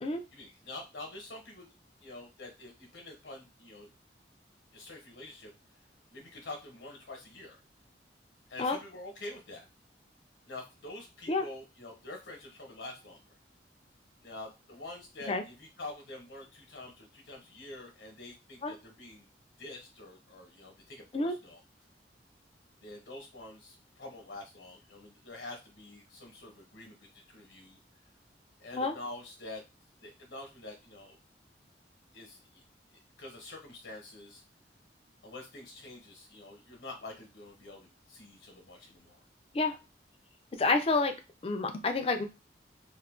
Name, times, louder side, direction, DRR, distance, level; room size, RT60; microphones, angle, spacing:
voice 1, 0.3-1.7 2.0-3.9 4.7-5.5 6.1-7.6 8.5-9.6 10.5-13.4 14.2-19.3 19.6-21.6 22.8-27.8 28.6-29.6 30.0-31.2 32.1-32.6 33.2-34.4 35.2-39.2, left 2 dB, 80° left, 1 dB, 0.9 m, -46 dB
voice 2, 40.6-41.2 41.4-42.2, left 3 dB, 35° left, 6 dB, 0.4 m, -28 dB
2.6 x 2.4 x 3.6 m, 0.28 s
head